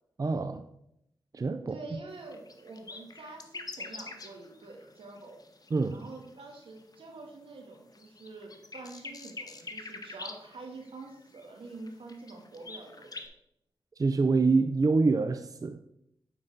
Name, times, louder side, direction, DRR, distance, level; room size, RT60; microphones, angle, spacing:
voice 1, 0.2-0.6 1.3-2.0 5.7-6.0 14.0-15.8, right 3 dB, 40° right, 8 dB, 0.5 m, -26 dB
voice 2, 1.7-5.4 5.9-13.2, right 3 dB, 85° right, 2 dB, 1.7 m, -46 dB
sound 1, 2.1-7.1 7.6-13.3, left 3 dB, 45° left, 0.9 m, -45 dB
9.0 x 4.0 x 5.3 m, 0.78 s
cardioid pair, 55°, 9 cm